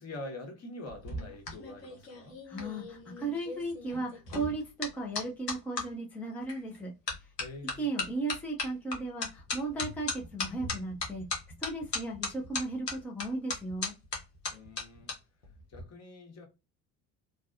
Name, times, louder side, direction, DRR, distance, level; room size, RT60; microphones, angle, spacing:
voice 1, 0.0-2.4 7.4-7.9 14.5-15.1 15.7-16.5, left 2 dB, 35° left, 1.4 m, -45 dB
sound 1, 0.9-5.9 6.5-6.8 7.1-15.1 15.4-15.8, left 3 dB, 90° left, 0.9 m, -37 dB
voice 2, 2.4-7.3 7.8-13.9, right 2 dB, 5° left, 0.8 m, -36 dB
3.3 x 2.3 x 2.6 m
figure-of-eight pair, 60°, 47 cm